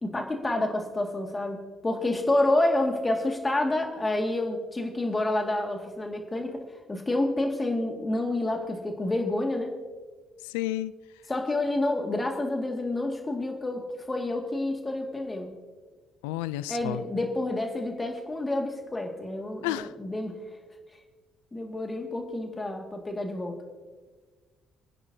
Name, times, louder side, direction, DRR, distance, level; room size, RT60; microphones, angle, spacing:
voice 1, 0.0-6.6 6.9-9.7 11.3-15.5 16.7-20.4 21.5-23.6, left 2 dB, 25° left, 2 dB, 2.0 m, -28 dB
voice 2, 10.4-10.9 16.2-17.0 19.6-19.9, left 15 dB, 90° left, 16 dB, 0.3 m, -31 dB
29.0 x 10.0 x 2.8 m, 1.4 s
hypercardioid pair, 60°, 0 cm